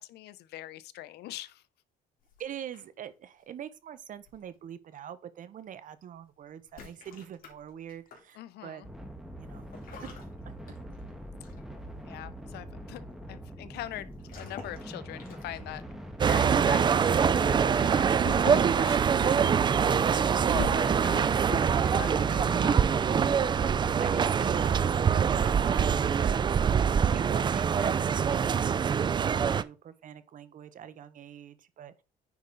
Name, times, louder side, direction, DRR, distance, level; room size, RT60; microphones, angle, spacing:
voice 1, 0.0-1.6 8.4-8.9 12.0-14.1 14.4-15.9 16.2-20.0 20.7-22.9, left 14 dB, 75° left, 0.7 m, -43 dB
sound 1, 2.3-3.1 4.3-4.6 6.6-8.3 9.7-11.1 11.4-11.7 14.2-14.9 15.2-15.8 18.2-18.8 20.0-21.0, left 5 dB, 55° left, 3.1 m, -41 dB
voice 2, 2.4-8.8 9.4-9.7 10.0-10.1 20.3-20.7 24.0-32.0, right 9 dB, 50° right, 0.9 m, -43 dB
sound 2, 8.8-24.3, equal, ahead, 1.5 m, -43 dB
sound 3, 16.2-29.6, right 7 dB, 25° right, 0.4 m, -24 dB
9.5 x 5.0 x 4.0 m
cardioid pair, 110°, 17 cm